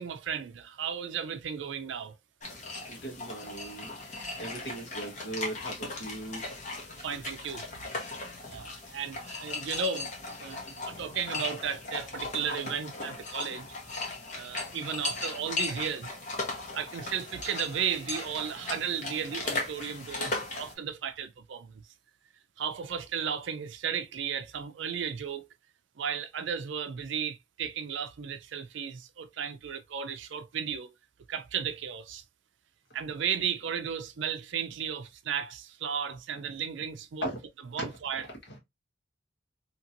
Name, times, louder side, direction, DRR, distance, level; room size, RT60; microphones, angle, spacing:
voice 1, 0.0-2.2 7.0-7.7 8.2-10.1 10.4-13.8 14.0-16.1 16.7-21.8 22.6-25.5 26.0-30.9 31.3-32.2 32.9-37.3 37.7-38.3, right 7 dB, 75° right, 0.4 m, -34 dB
sound 1, 2.4-20.7, left 3 dB, 40° left, 0.9 m, -37 dB
voice 2, 2.9-6.4 37.2-37.4 37.8-37.9, right 1 dB, 60° left, 1.3 m, -38 dB
2.9 x 2.8 x 2.5 m
head